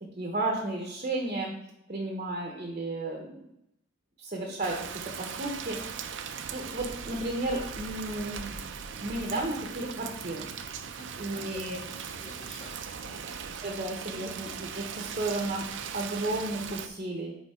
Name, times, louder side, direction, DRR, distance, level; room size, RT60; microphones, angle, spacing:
voice 1, 0.2-1.5 1.9-3.5 4.2-4.9 5.2-5.8 6.5-8.6 9.0-10.5 11.2-11.8 13.6-15.7 15.9-17.4, right 2 dB, 40° right, 1 dB, 0.9 m, -33 dB
Rain, 4.6-16.9, right 7 dB, 70° right, 0.5 m, -39 dB
voice 2, 11.0-13.4, left 1 dB, 40° left, 0 dB, 1.5 m, -50 dB
9.6 x 3.7 x 3.7 m, 0.82 s
head